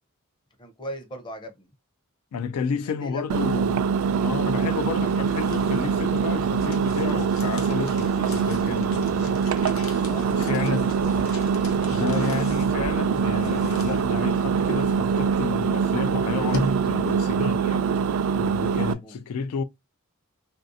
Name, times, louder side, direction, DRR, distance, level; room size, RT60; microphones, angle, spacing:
voice 1, 0.6-1.7 2.9-3.5 10.1-11.1 18.8-19.2, equal, 20° left, 0.6 m, -39 dB
voice 2, 2.3-3.8 4.2-10.0 10.3-10.9 11.9-17.9 18.4-19.6, left 5 dB, 85° left, 0.3 m, -31 dB
Engine, 3.3-18.9, right 6 dB, 70° right, 0.3 m, -24 dB
sound 1, 5.0-17.5, equal, 65° left, 0.8 m, -39 dB
sound 2, 6.6-7.9 8.2-10.0 10.2-15.5, equal, 45° left, 1.1 m, -44 dB
3.1 x 2.5 x 2.6 m
head